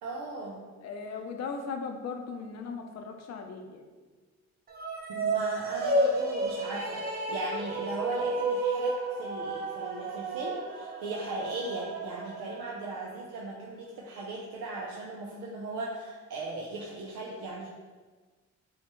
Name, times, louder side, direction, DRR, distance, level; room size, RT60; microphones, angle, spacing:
voice 1, 0.0-0.6 5.1-17.7, right 2 dB, 85° right, -3 dB, 0.7 m, -38 dB
voice 2, 0.8-3.8, left 5 dB, 60° left, 4 dB, 0.7 m, -38 dB
sound 1, 4.7-13.2, right 2 dB, 30° right, 0.7 m, -32 dB
7.0 x 2.4 x 3.0 m, 1.4 s
cardioid pair, 90°, 30 cm